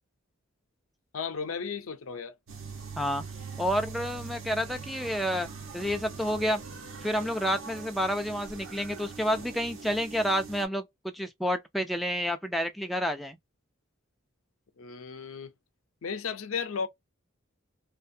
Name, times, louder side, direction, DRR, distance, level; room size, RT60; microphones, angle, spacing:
voice 1, 1.1-2.3 14.8-15.5 16.0-16.9, left 6 dB, 80° left, 0.6 m, -34 dB
sound 1, 2.5-10.6, right 4 dB, 70° right, 0.9 m, -42 dB
voice 2, 3.6-5.5 5.7-6.6 7.0-10.8 11.1-13.4, equal, ahead, 0.3 m, -29 dB
2.5 x 2.2 x 2.6 m
head